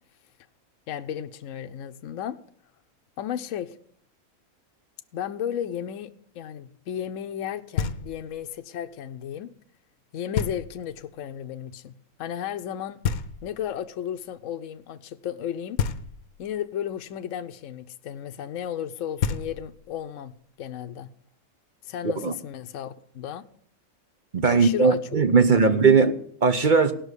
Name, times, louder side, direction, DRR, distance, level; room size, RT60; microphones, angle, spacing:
voice 1, 0.9-2.4 3.2-3.8 5.1-9.5 10.1-11.9 12.2-13.0 13.4-15.8 16.4-20.3 20.6-21.1 21.8-23.4 24.5-25.0 25.4-25.7, left 10 dB, 65° left, 1.0 m, -34 dB
Knock, 7.8-8.4 10.4-11.0 13.0-13.8 15.8-16.5 18.8-18.9 19.2-20.0, left 7 dB, 85° left, 1.2 m, -30 dB
voice 2, 24.3-26.9, right 5 dB, 40° right, 0.9 m, -19 dB
17.0 x 6.1 x 8.1 m
omnidirectional pair, 1.5 m